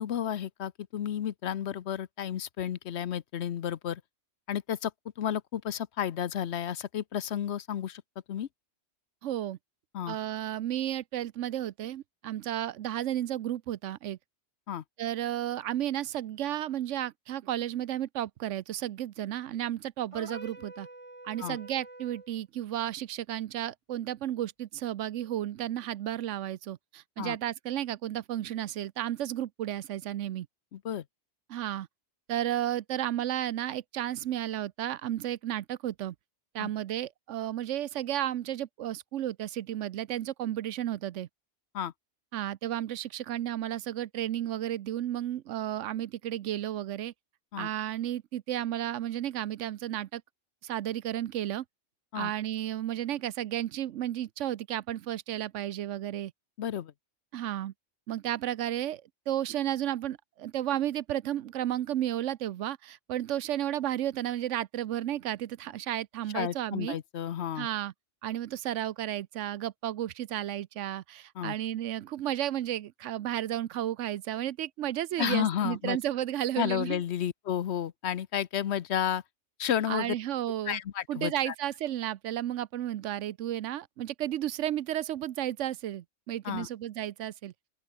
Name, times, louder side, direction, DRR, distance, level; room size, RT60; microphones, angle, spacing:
voice 1, 0.0-4.0 4.5-4.9 5.2-8.0 8.3-8.5 9.9-10.2 14.7-14.8 21.4-21.6 27.2-27.4 30.7-31.0 36.6-36.7 41.7-41.9 47.5-47.7 52.1-52.3 56.6-56.9 66.3-67.7 71.4-71.6 75.2-76.0 76.6-79.2 79.6-80.2 80.7-81.5 86.4-86.7, left 9 dB, 65° left, 1.0 m, -32 dB
voice 2, 9.2-9.6 10.1-14.2 15.0-20.9 21.2-30.5 31.5-31.9 32.3-36.1 36.5-41.3 42.3-47.1 47.6-50.2 50.6-51.6 52.1-56.3 57.3-57.7 58.1-67.0 67.6-67.9 68.2-77.0 79.9-80.8 81.1-87.5, right 12 dB, 80° right, 1.0 m, -33 dB
sound 1, 20.1-22.3, right 2 dB, 25° right, 2.9 m, -46 dB
open air
omnidirectional pair, 1.2 m